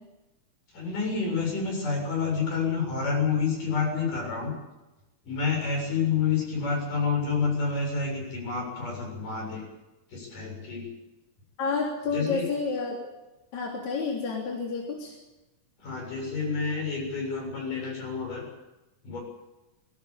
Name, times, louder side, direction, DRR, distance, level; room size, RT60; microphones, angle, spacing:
voice 1, 0.7-4.5 5.2-9.6 10.1-10.9 12.1-12.4 15.8-18.5 19.0-19.2, left 5 dB, 85° left, 1 dB, 8.9 m, -28 dB
voice 2, 11.6-13.1 13.5-15.1, left 4 dB, 60° left, -1 dB, 4.6 m, -30 dB
20.0 x 18.5 x 8.7 m, 1.0 s
omnidirectional pair, 3.6 m